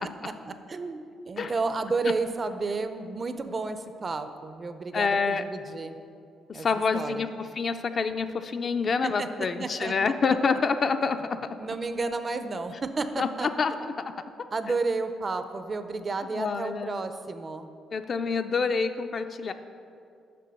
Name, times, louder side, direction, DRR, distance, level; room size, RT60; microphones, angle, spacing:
voice 1, 0.0-6.0 6.5-6.7 6.9-7.3 9.0-9.9 11.6-13.5 14.5-17.7, right 3 dB, 30° right, 9 dB, 0.4 m, -32 dB
voice 2, 4.9-5.4 6.5-11.4 13.2-14.1 16.3-16.9 17.9-19.5, left 5 dB, 40° left, 8 dB, 0.4 m, -27 dB
6.8 x 5.9 x 6.3 m, 2.4 s
cardioid pair, 135°, 0 cm